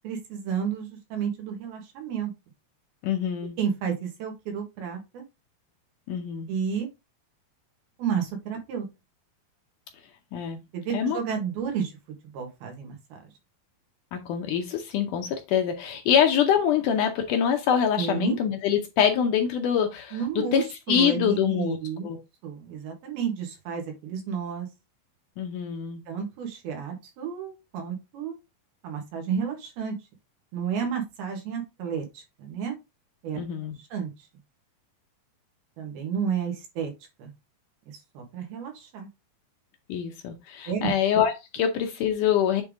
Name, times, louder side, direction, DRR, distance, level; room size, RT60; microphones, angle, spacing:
voice 1, 0.0-2.3 3.6-5.2 6.5-6.9 8.0-8.9 10.7-11.9 12.3-13.0 18.0-18.4 20.1-22.1 22.4-24.7 26.1-28.4 28.8-30.0 30.5-32.8 33.2-33.4 33.8-34.1 35.8-36.9 37.2-37.3 38.2-39.1 40.7-40.9, right 7 dB, 85° right, 3 dB, 3.6 m, -31 dB
voice 2, 3.0-3.6 6.1-6.5 10.3-10.6 10.9-11.2 14.1-21.8 22.0-22.2 25.4-26.0 33.4-33.8 39.9-42.6, left 8 dB, 75° left, 5 dB, 2.0 m, -25 dB
8.0 x 3.5 x 3.6 m, 0.23 s
omnidirectional pair, 4.3 m